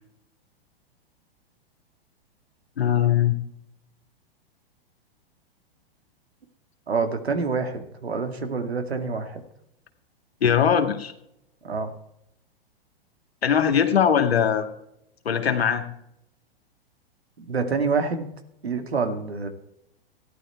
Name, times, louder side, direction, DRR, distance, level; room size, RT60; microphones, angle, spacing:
voice 1, 2.8-3.3 10.4-11.1 13.4-14.7 15.3-15.8, left 8 dB, 80° left, 6 dB, 2.1 m, -20 dB
voice 2, 6.9-9.4 11.6-11.9 17.4-18.3 18.6-19.5, right 4 dB, 85° right, 7 dB, 2.3 m, -27 dB
14.5 x 11.5 x 4.5 m, 0.77 s
hypercardioid pair, 110°, 31 cm